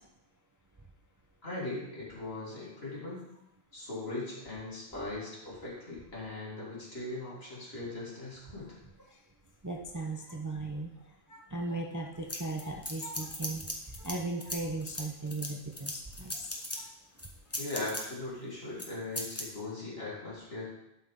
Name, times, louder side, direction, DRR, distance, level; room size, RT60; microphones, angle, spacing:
voice 1, 1.4-3.2 3.7-8.8 17.6-20.7, left 2 dB, 60° left, -6 dB, 3.1 m, -39 dB
voice 2, 9.6-10.9 11.3-13.7 14.0-16.4 16.8-16.9, right 2 dB, 20° right, 1 dB, 0.6 m, -37 dB
sound 1, 12.3-14.1 14.4-16.8 17.2-18.0 18.8-18.9 19.1-19.4, left 1 dB, 15° left, 1.1 m, -38 dB
12.0 x 5.6 x 3.7 m, 0.86 s
omnidirectional pair, 1.2 m